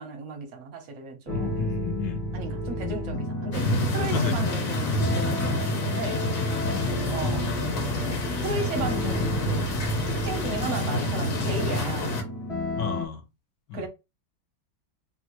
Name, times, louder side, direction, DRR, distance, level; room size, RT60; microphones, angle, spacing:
voice 1, 0.0-1.7 2.3-6.2 7.1-9.7 10.1-12.2 13.7-13.9, right 3 dB, 60° right, 0.8 m, -35 dB
voice 2, 1.3-2.2 2.7-3.2 4.0-4.6 6.6-6.9 8.0-8.2 11.5-11.6 12.8-13.2 13.7-13.9, left 6 dB, 75° left, 1.2 m, -32 dB
sound 1, 1.3-13.1, left 1 dB, 35° left, 0.5 m, -33 dB
sound 2, 3.5-12.2, left 1 dB, 55° left, 1.0 m, -28 dB
3.5 x 2.1 x 2.9 m
omnidirectional pair, 2.1 m